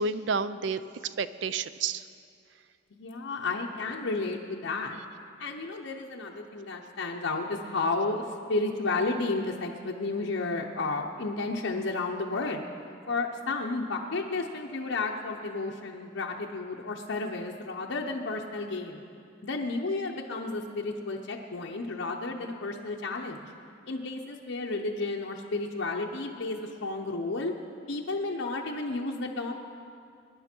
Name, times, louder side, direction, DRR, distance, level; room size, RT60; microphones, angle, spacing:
voice 1, 0.0-2.0, right 4 dB, 65° right, 14 dB, 0.4 m, -30 dB
voice 2, 2.9-5.0 5.4-8.2 8.5-12.7 13.1-19.0 19.4-23.5 23.9-27.5 27.9-29.5, left 3 dB, 75° left, -1 dB, 0.8 m, -32 dB
21.5 x 10.5 x 4.5 m, 2.4 s
head